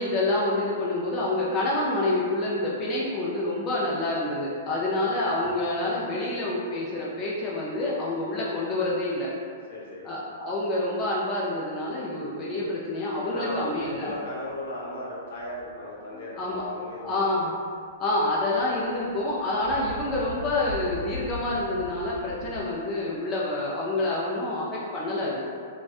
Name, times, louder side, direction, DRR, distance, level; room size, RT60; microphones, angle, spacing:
voice 1, 0.0-9.3 10.0-14.1 16.4-16.6 17.0-17.5 18.0-25.4, left 2 dB, 20° left, -6 dB, 0.3 m, -27 dB
voice 2, 9.7-10.1 13.2-17.5, left 1 dB, 70° left, -6 dB, 0.8 m, -36 dB
sound 1, 14.5-14.7 15.3-15.8 16.3-17.5 17.8-22.6, left 1 dB, 85° right, 1.0 m, -41 dB
2.6 x 2.1 x 2.4 m, 2.2 s
hypercardioid pair, 150°, 0 cm